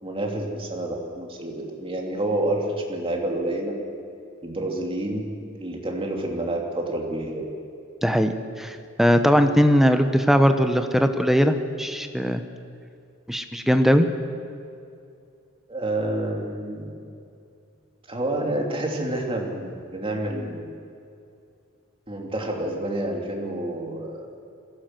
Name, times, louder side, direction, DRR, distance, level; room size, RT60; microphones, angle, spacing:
voice 1, 0.0-3.7 4.4-5.3 5.6-7.5 15.7-16.9 18.1-20.7 22.1-24.3, right 1 dB, 25° right, 0 dB, 2.8 m, -28 dB
voice 2, 8.0-8.3 8.6-12.4 13.3-14.1, equal, ahead, 7 dB, 0.9 m, -19 dB
21.5 x 16.5 x 7.8 m, 2.5 s
head